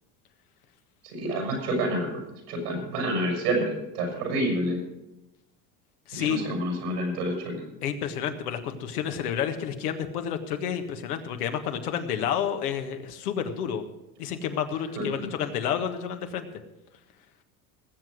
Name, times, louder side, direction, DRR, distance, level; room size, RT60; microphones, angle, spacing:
voice 1, 1.1-2.2 2.5-4.8 6.1-7.6 15.0-15.3, right 1 dB, 90° right, 2 dB, 5.7 m, -28 dB
voice 2, 6.1-6.4 7.8-13.8 14.2-16.5, left 8 dB, 90° left, 7 dB, 1.6 m, -30 dB
19.0 x 8.0 x 6.2 m, 0.97 s
supercardioid pair, 90°, 44 cm